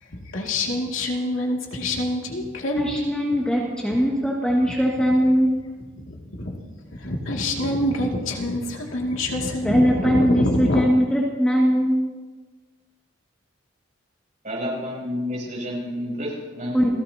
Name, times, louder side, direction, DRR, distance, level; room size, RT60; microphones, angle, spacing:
voice 1, 0.0-3.0 6.0-6.6 6.9-10.8, left 1 dB, 85° left, 0 dB, 2.4 m, -26 dB
voice 2, 2.8-5.5 9.6-12.0 16.7-16.9, equal, 5° left, -4 dB, 2.1 m, -20 dB
voice 3, 14.4-16.9, left 1 dB, 40° right, -4 dB, 7.3 m, -30 dB
29.5 x 17.0 x 2.9 m, 1.3 s
head